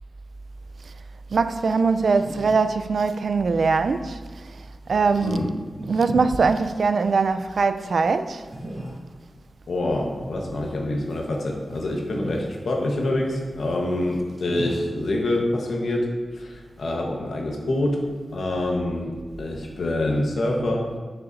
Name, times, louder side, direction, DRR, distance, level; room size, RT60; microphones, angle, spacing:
sound 1, 1.2-17.1, right 1 dB, 30° right, 2.1 m, -40 dB
voice 1, 1.3-4.2 4.9-5.4 5.9-8.4, right 4 dB, 60° right, 0.3 m, -21 dB
voice 2, 5.2-5.5 9.7-16.1 16.3-18.0 18.3-19.1 19.4-20.9, left 1 dB, 75° left, 1.2 m, -26 dB
9.2 x 6.7 x 2.7 m
wide cardioid pair, 150°, 0 cm